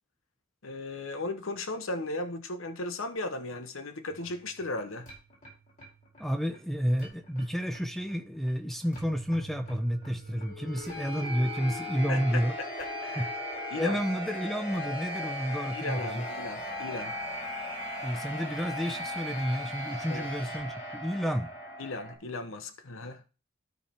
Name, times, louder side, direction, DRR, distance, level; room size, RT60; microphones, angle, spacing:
voice 1, 0.6-5.1 12.1-12.2 12.8-13.3 13.7-14.0 15.7-17.2 20.1-20.3 21.8-23.2, left 2 dB, 65° left, 0.9 m, -36 dB
sound 1, 4.1-22.1, left 1 dB, 35° left, 4.4 m, -39 dB
voice 2, 6.2-12.5 13.2-13.3 13.8-16.3 18.0-21.5, equal, ahead, 0.6 m, -30 dB
12.5 x 5.2 x 4.3 m
head